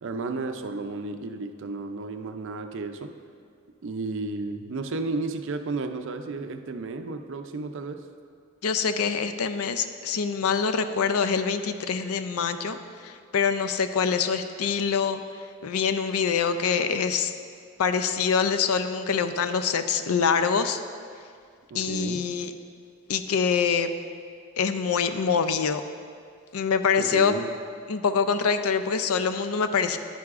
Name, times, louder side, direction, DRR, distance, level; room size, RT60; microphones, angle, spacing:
voice 1, 0.0-3.1 3.8-8.0 21.7-22.2 27.0-27.5, right 3 dB, 55° right, 7 dB, 0.5 m, -33 dB
voice 2, 8.6-15.2 15.6-17.3 17.8-20.8 21.7-22.5 23.1-23.9 24.6-25.8 26.5-27.3 27.9-30.0, left 6 dB, 80° left, 10 dB, 0.5 m, -25 dB
10.5 x 9.4 x 2.5 m, 2.2 s
head